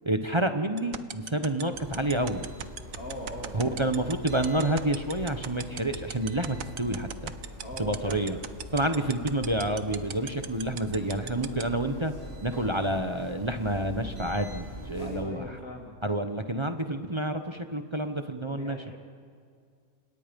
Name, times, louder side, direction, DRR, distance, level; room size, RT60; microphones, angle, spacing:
voice 1, 0.0-2.4 3.5-7.3 7.8-8.4 8.7-12.1 12.4-15.6 16.0-18.8, right 1 dB, 25° right, 6 dB, 1.1 m, -29 dB
sound 1, 0.8-11.6, right 9 dB, 90° right, 1.4 m, -36 dB
sound 2, 1.7-15.2, equal, 50° right, 5.8 m, -43 dB
voice 2, 3.0-3.9 7.6-8.3 8.8-9.1 15.0-16.0 18.5-19.0, left 1 dB, 85° left, 1 dB, 3.7 m, -40 dB
29.5 x 27.5 x 5.3 m, 2.2 s
omnidirectional pair, 1.4 m